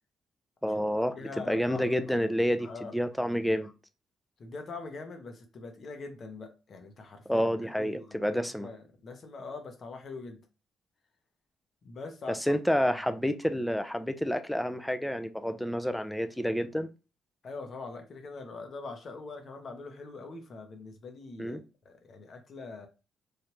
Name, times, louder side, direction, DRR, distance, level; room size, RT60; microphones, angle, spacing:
voice 1, 0.6-1.2 1.5-3.7 7.3-8.7 12.3-16.9 21.4-21.6, equal, 5° left, 0.4 m, -29 dB
voice 2, 1.1-2.1 2.6-3.0 3.6-3.7 4.4-10.5 11.8-12.6 12.9-13.0 17.4-21.6 21.8-22.9, left 3 dB, 50° left, 0.8 m, -43 dB
3.2 x 2.4 x 2.9 m
cardioid pair, 90°, 0 cm